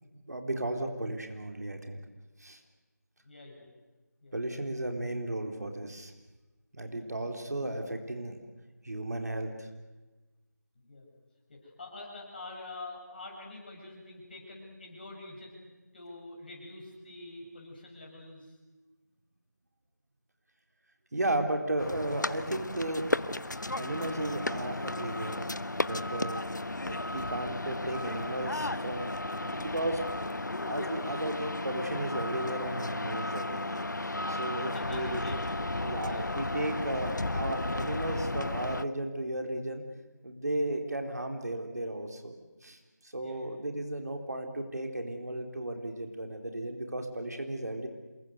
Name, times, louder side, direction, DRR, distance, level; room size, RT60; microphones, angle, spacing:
voice 1, 0.3-2.0 2.4-2.6 4.3-6.1 6.7-8.4 8.8-9.7 21.1-23.1 23.8-25.5 25.8-26.4 26.8-30.0 30.7-35.4 35.8-39.8 40.2-42.4 42.6-47.9, right 1 dB, 65° right, 4 dB, 4.0 m, -35 dB
voice 2, 3.2-3.7 4.2-4.4 6.9-7.6 10.8-11.1 11.5-15.6 15.9-18.6 34.7-36.3 43.2-43.5, left 2 dB, 35° left, -1 dB, 7.2 m, -46 dB
sound 1, 21.8-38.8, left 2 dB, 85° left, 1.0 m, -34 dB
27.0 x 22.0 x 8.1 m, 1.2 s
figure-of-eight pair, 170°, 10 cm